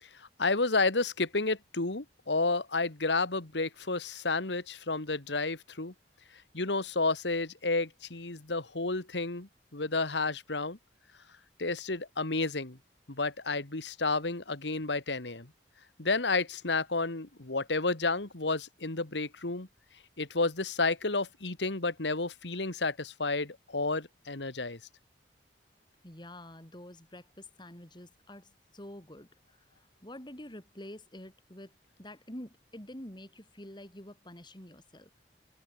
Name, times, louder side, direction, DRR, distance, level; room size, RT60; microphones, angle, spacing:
voice 1, 0.0-5.9 6.5-10.8 11.6-12.8 13.1-15.5 16.0-19.7 20.2-24.8, left 3 dB, 75° left, 2.0 m, -31 dB
voice 2, 26.0-35.1, left 1 dB, 25° left, 5.1 m, -48 dB
head